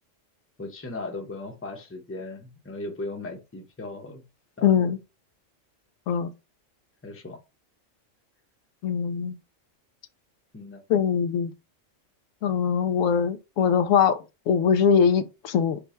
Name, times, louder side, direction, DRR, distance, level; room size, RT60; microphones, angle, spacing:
voice 1, 0.6-4.2 4.6-4.9 7.0-7.4 10.5-10.8, left 2 dB, 15° left, 0.7 m, -37 dB
voice 2, 4.6-5.0 6.1-6.3 8.8-9.4 10.9-11.5 12.4-14.2 14.5-15.8, left 7 dB, 85° left, 1.0 m, -22 dB
5.2 x 2.3 x 4.2 m
omnidirectional pair, 1.3 m